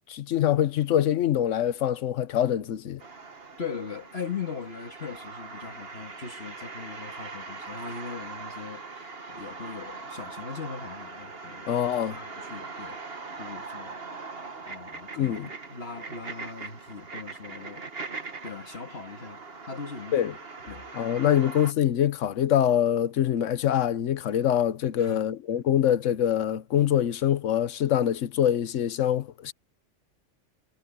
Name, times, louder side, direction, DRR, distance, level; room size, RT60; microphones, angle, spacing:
voice 1, 0.1-3.0 11.7-12.2 15.2-15.5 20.1-20.3 20.9-29.5, left 10 dB, 85° left, 1.2 m, -24 dB
sound 1, 3.0-21.7, right 4 dB, 50° right, 2.0 m, -41 dB
voice 2, 3.6-11.7 12.0-13.0 13.4-14.0 14.7-17.8 18.4-20.3 20.7-20.9 25.0-25.3, left 5 dB, 55° left, 2.3 m, -39 dB
omnidirectional pair, 1.2 m